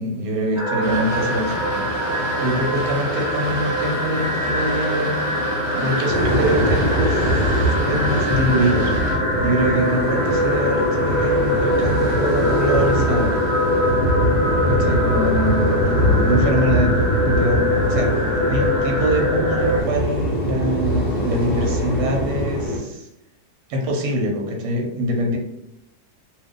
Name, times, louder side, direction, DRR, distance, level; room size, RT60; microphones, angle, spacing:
voice 1, 0.0-5.3 5.7-13.4 14.7-23.1 23.7-25.4, equal, 85° right, 1 dB, 1.3 m, -24 dB
sound 1, 0.5-19.8, equal, 15° right, 1.4 m, -24 dB
Boat Water vehicle, 0.8-9.2, left 1 dB, 45° right, 1.2 m, -29 dB
sound 2, 6.1-22.8, equal, 40° left, 1.0 m, -22 dB
2.7 x 2.6 x 3.6 m, 0.78 s
omnidirectional pair, 1.8 m